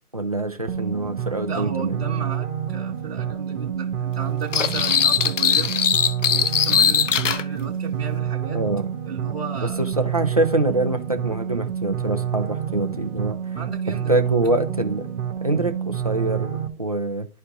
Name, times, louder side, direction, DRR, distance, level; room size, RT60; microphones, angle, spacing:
voice 1, 0.1-2.0 8.5-8.8 9.6-13.4 14.1-15.1 15.4-17.3, right 2 dB, 25° right, 0.5 m, -24 dB
sound 1, 0.7-16.7, right 9 dB, 60° right, 1.4 m, -28 dB
voice 2, 1.5-5.7 6.3-8.6 9.1-9.8 13.6-14.2, right 5 dB, 40° right, 2.0 m, -33 dB
sound 2, 4.5-7.4, left 7 dB, 55° left, 0.5 m, -20 dB
12.5 x 4.3 x 2.6 m
figure-of-eight pair, 150°, 45 cm